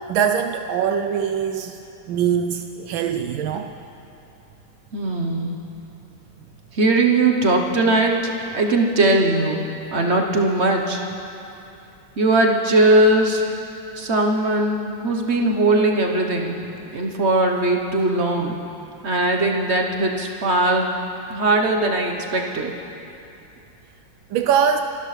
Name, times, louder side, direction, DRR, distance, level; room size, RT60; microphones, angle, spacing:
voice 1, 0.1-1.8 2.1-3.7 24.3-24.8, right 8 dB, 80° right, 6 dB, 1.3 m, -22 dB
voice 2, 4.9-5.6 6.7-11.0 12.2-13.4 14.0-16.6 16.9-18.6 19.0-20.9 21.3-22.7, right 2 dB, 45° right, 1 dB, 1.0 m, -19 dB
26.0 x 12.5 x 3.3 m, 2.7 s
omnidirectional pair, 2.2 m